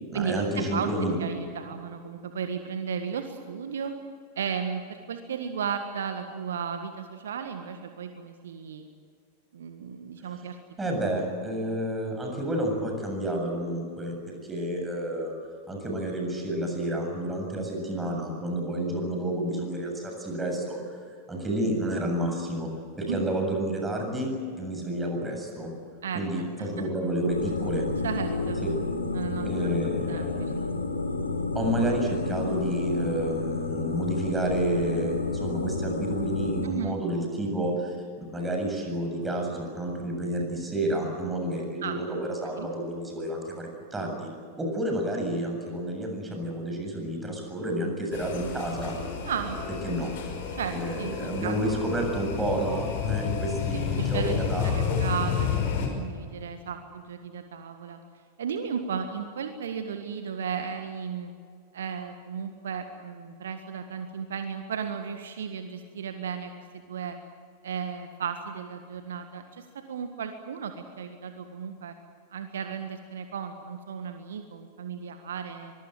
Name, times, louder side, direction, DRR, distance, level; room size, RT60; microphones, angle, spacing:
voice 1, 0.1-1.1 10.8-15.3 15.7-20.8 21.3-22.7 23.0-24.3 24.6-25.7 26.1-27.8 28.6-28.7 29.4-30.4 31.5-44.3 44.6-49.1 49.8-50.1 50.7-55.0, right 1 dB, 10° right, 2 dB, 7.6 m, -30 dB
voice 2, 1.2-4.0 4.3-8.9 9.5-10.6 23.1-23.3 26.0-26.7 28.0-28.6 29.1-29.5 30.1-30.6 36.6-37.0 41.8-42.0 42.5-42.7 49.2-49.6 50.5-51.6 53.7-58.0 58.4-61.3 61.7-67.2 67.6-71.9 72.3-75.7, right 7 dB, 65° right, 7 dB, 1.7 m, -35 dB
sound 1, 27.3-36.7, left 3 dB, 80° left, 2.5 m, -30 dB
sound 2, 48.1-55.9, left 7 dB, 50° left, 5.4 m, -30 dB
24.5 x 22.0 x 7.9 m, 2.2 s
figure-of-eight pair, 90°, 0 cm